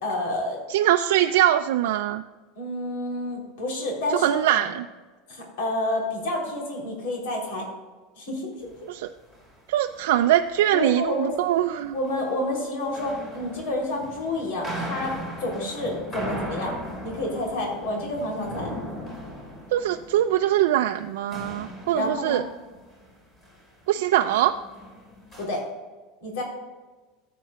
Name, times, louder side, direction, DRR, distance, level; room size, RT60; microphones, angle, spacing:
voice 1, 0.0-0.6 2.6-4.6 5.3-7.7 8.2-8.5 10.7-11.3 11.9-15.1 15.4-16.7 17.0-18.7 21.9-22.4 25.4-25.6 26.2-26.4, left 1 dB, 75° left, -1 dB, 3.2 m, -29 dB
voice 2, 0.7-2.2 4.1-4.9 8.9-9.1 9.7-12.0 19.7-22.4 23.9-24.6, right 12 dB, 90° right, 6 dB, 0.4 m, -22 dB
sound 1, 8.6-8.9 9.2-9.5 9.9-11.6 11.8-12.2 12.8-21.1 21.3-23.2 23.4-23.8 24.1-25.4, equal, 15° left, 2.4 m, -38 dB
14.0 x 8.3 x 2.3 m, 1.3 s
supercardioid pair, 175°, 0 cm